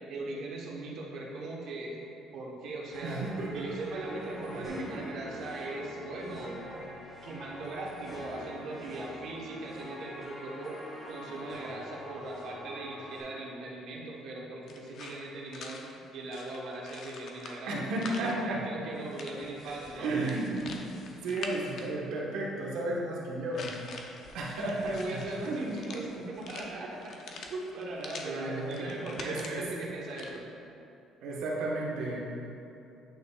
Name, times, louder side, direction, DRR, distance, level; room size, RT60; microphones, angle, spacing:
voice 1, 0.1-1.9 2.3-3.2 3.5-6.7 7.2-10.8 11.1-17.7 18.0-20.2 24.9-30.5, right 2 dB, 60° right, -3 dB, 1.1 m, -39 dB
sound 1, 2.9-13.2, equal, 5° left, 1.4 m, -45 dB
voice 2, 3.0-4.1 4.5-4.9 17.7-18.7 19.7-20.8 21.2-23.7 24.3-25.9 28.2-28.9 29.2-29.7 31.2-32.2, right 2 dB, 75° right, -4 dB, 1.2 m, -33 dB
sound 2, 14.7-18.3 19.0-22.0 23.5-28.3 28.6-30.4, left 4 dB, 45° left, 0.5 m, -46 dB
8.9 x 5.6 x 2.3 m, 2.9 s
cardioid pair, 170°, 0 cm